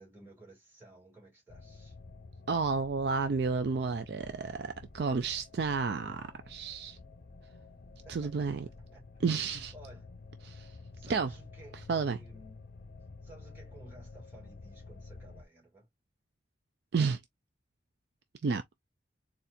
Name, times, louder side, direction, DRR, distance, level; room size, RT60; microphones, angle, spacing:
voice 1, 0.0-2.0 8.0-8.3 8.9-9.0 9.7-10.1 10.9-12.6 13.2-15.9, right 1 dB, 10° right, 2.2 m, -55 dB
sound 1, 1.5-15.5, left 3 dB, 50° left, 0.6 m, -51 dB
voice 2, 2.5-7.0 8.1-8.7 9.2-9.7 10.4-10.7 11.0-11.3 11.9-12.2 16.9-17.2 18.4-18.6, right 5 dB, 55° right, 0.4 m, -31 dB
4.2 x 2.4 x 2.6 m
head